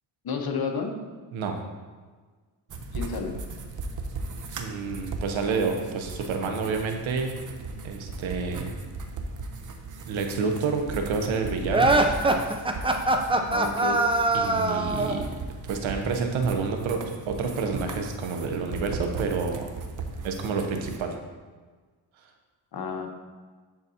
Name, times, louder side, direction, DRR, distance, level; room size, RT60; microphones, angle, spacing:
voice 1, 0.2-0.9 2.9-3.4 13.5-14.0 22.7-23.1, left 5 dB, 50° left, 4 dB, 1.0 m, -31 dB
sound 1, 2.7-21.0, right 3 dB, 40° right, 0.7 m, -38 dB
voice 2, 4.6-7.4 7.8-8.7 10.0-12.0 14.3-15.3 15.7-19.7 20.2-21.2, right 4 dB, 80° right, 4 dB, 0.9 m, -29 dB
sound 2, 11.7-15.2, right 2 dB, 10° right, 0.5 m, -22 dB
11.0 x 4.0 x 2.8 m, 1.4 s
cardioid pair, 75°, 47 cm